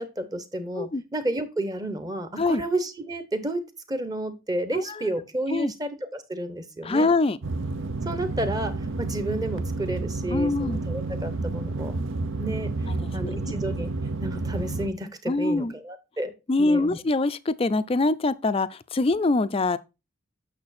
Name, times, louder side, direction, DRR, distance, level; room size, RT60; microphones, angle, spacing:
voice 1, 0.0-7.1 8.0-12.0 12.4-12.7 13.1-13.9 14.2-17.0, right 1 dB, 20° right, 1.0 m, -31 dB
voice 2, 4.7-5.1 5.5-5.7 6.8-7.4 10.3-10.8 12.9-13.4 15.3-15.7 16.5-19.8, left 2 dB, 25° left, 0.4 m, -24 dB
sound 1, 7.4-14.9, right 3 dB, 65° right, 0.7 m, -30 dB
8.7 x 6.6 x 4.1 m
head